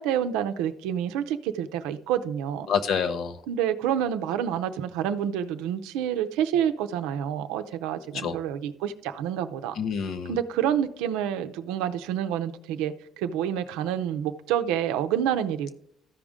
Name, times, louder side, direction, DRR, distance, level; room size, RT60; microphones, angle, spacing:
voice 1, 0.0-2.7 3.5-9.8 10.3-15.7, right 9 dB, 85° right, 0.6 m, -28 dB
voice 2, 2.7-3.4 8.1-8.4 9.8-10.3, left 6 dB, 65° left, 0.8 m, -27 dB
13.5 x 5.1 x 3.6 m
supercardioid pair, 75°, 0 cm